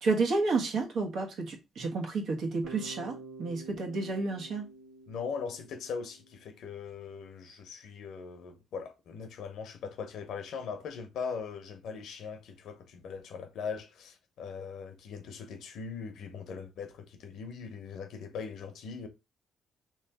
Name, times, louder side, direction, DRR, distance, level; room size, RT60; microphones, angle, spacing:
voice 1, 0.0-4.7, right 3 dB, 70° right, 1.3 m, -31 dB
Bass guitar, 2.6-6.7, right 3 dB, 90° right, 1.7 m, -49 dB
voice 2, 5.1-19.1, left 5 dB, 75° left, 0.9 m, -40 dB
3.3 x 3.1 x 3.4 m
cardioid pair, 90°, 0 cm